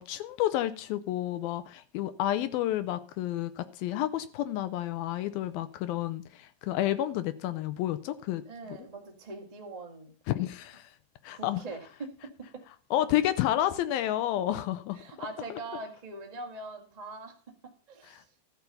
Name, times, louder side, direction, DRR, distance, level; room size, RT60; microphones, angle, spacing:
voice 1, 0.0-8.4 8.7-8.8 10.3-10.9 11.2-11.6 12.9-15.0 18.1-18.2, left 13 dB, 80° left, 2.2 m, -30 dB
voice 2, 8.4-10.5 11.3-11.8 14.9-17.4 17.9-18.3, right 2 dB, 25° right, 0.7 m, -42 dB
13.5 x 6.6 x 6.9 m
omnidirectional pair, 4.8 m